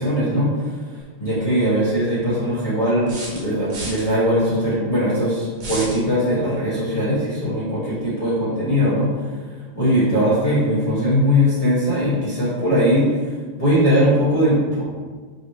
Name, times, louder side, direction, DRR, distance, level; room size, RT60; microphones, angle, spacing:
voice 1, 0.0-14.8, equal, 30° left, -11 dB, 0.7 m, -20 dB
sound 1, 1.0-1.1 3.1-4.0 5.6-6.0, right 2 dB, 55° right, 1.4 m, -31 dB
4.8 x 2.8 x 3.1 m, 1.5 s
omnidirectional pair, 2.4 m